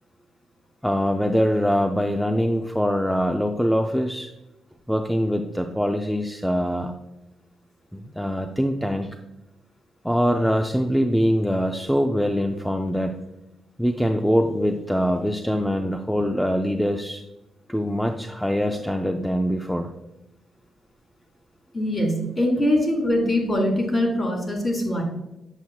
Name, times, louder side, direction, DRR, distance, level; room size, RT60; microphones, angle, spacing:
voice 1, 0.8-4.3 4.9-6.9 7.9-9.1 10.0-13.2 13.8-17.2 17.7-19.9, equal, ahead, 4 dB, 0.4 m, -23 dB
voice 2, 21.7-25.0, left 1 dB, 30° left, -1 dB, 2.6 m, -22 dB
7.8 x 7.0 x 2.3 m, 0.92 s
cardioid pair, 100°, 0 cm